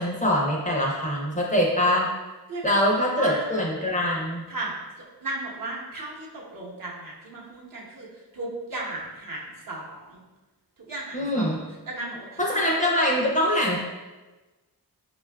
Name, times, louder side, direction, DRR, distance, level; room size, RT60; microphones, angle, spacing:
voice 1, 0.0-2.1 2.6-4.4 11.1-11.6 12.4-13.8, left 1 dB, 20° left, -3 dB, 0.5 m, -23 dB
voice 2, 2.5-3.6 4.5-4.7 5.2-10.2 10.8-11.6 11.9-12.7, right 2 dB, 55° right, -3 dB, 0.9 m, -35 dB
5.1 x 2.3 x 2.2 m, 1.2 s
wide cardioid pair, 105°, 40 cm